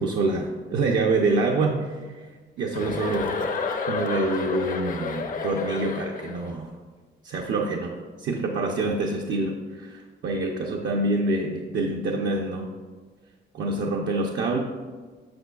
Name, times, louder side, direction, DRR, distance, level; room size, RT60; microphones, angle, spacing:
voice 1, 0.0-2.3 2.6-3.3 3.9-6.7 7.2-12.7 13.5-14.6, right 3 dB, 65° right, 0 dB, 0.6 m, -26 dB
Chuckle chortle, 2.7-6.5, left 4 dB, 45° left, 0.6 m, -30 dB
7.7 x 5.9 x 2.3 m, 1.5 s
cardioid pair, 90°, 20 cm